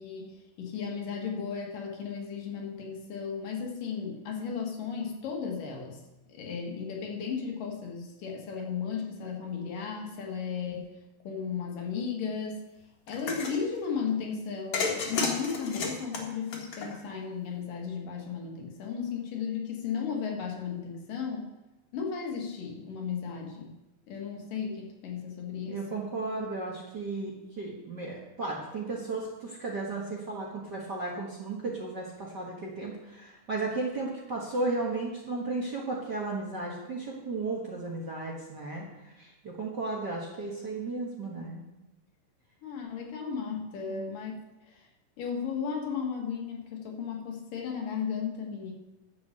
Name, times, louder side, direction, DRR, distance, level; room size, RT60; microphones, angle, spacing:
voice 1, 0.0-6.0 6.3-10.9 11.2-12.6 13.1-21.5 21.9-23.8 24.1-25.8 42.6-44.3 44.7-44.9 45.2-48.7, left 6 dB, 75° left, 0 dB, 3.4 m, -35 dB
sound 1, 13.1-13.6 14.7-17.2, left 4 dB, 60° left, 2.9 m, -32 dB
voice 2, 25.7-41.6 43.9-44.1, right 3 dB, 45° right, -2 dB, 1.5 m, -34 dB
10.5 x 8.1 x 6.6 m, 1.0 s
omnidirectional pair, 3.8 m